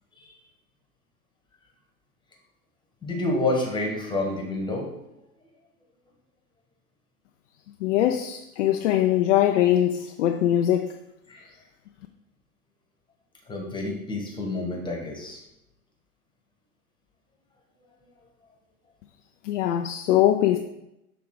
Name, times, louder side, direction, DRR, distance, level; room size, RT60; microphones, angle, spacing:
voice 1, 3.0-4.9 11.3-11.5 13.5-15.4, left 2 dB, 10° left, 1.3 m, -28 dB
voice 2, 7.8-10.9 19.4-20.6, left 12 dB, 55° left, 0.5 m, -22 dB
6.1 x 3.4 x 4.7 m
hypercardioid pair, 100°, 45 cm